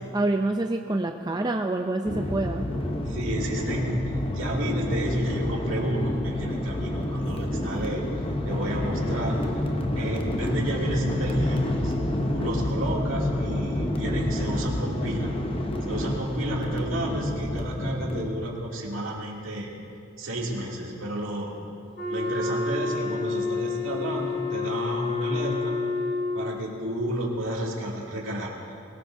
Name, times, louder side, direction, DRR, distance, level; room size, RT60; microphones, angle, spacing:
voice 1, 0.1-2.6, right 2 dB, 20° right, 4 dB, 0.4 m, -26 dB
sound 1, 2.1-18.3, left 1 dB, 25° left, 0.8 m, -29 dB
voice 2, 3.1-4.0 4.3-8.0 8.4-9.4 10.0-11.9 12.3-15.3 15.8-19.7 20.2-21.6 22.1-25.7 26.3-28.5, right 1 dB, 65° right, -3 dB, 2.7 m, -31 dB
Wind instrument woodwind instrument, 21.9-26.6, left 4 dB, 50° left, 3.3 m, -29 dB
21.5 x 18.5 x 2.7 m, 2.4 s
head